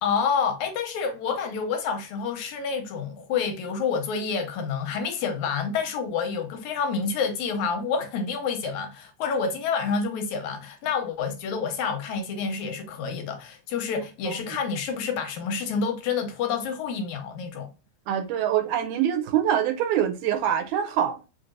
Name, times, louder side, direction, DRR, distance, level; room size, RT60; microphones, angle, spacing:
voice 1, 0.0-17.7, left 5 dB, 75° left, 1.9 m, -28 dB
voice 2, 18.1-21.2, right 10 dB, 80° right, 1.9 m, -24 dB
5.2 x 2.7 x 2.4 m
omnidirectional pair, 3.6 m